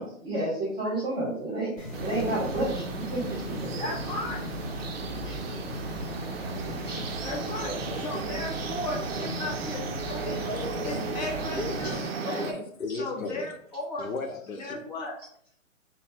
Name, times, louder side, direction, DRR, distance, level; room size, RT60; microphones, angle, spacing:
voice 1, 0.0-2.9 3.1-3.9 5.2-5.4 6.8-7.0 7.6-7.7 11.9-12.0, right 1 dB, 10° right, -7 dB, 1.0 m, -31 dB
sound 1, 1.8-11.9, left 1 dB, 65° left, 1.1 m, -38 dB
sound 2, 1.9-12.5, right 4 dB, 50° right, 0.4 m, -35 dB
voice 2, 3.8-4.4 7.2-10.5 10.8-12.6 13.0-14.1 14.5-15.2, left 1 dB, 35° left, 0 dB, 0.5 m, -36 dB
voice 3, 7.9-8.3 10.5-11.3 11.5-13.5 14.0-14.8, left 2 dB, 85° left, 6 dB, 0.7 m, -36 dB
2.7 x 2.0 x 3.5 m, 0.63 s
hypercardioid pair, 130°, 41 cm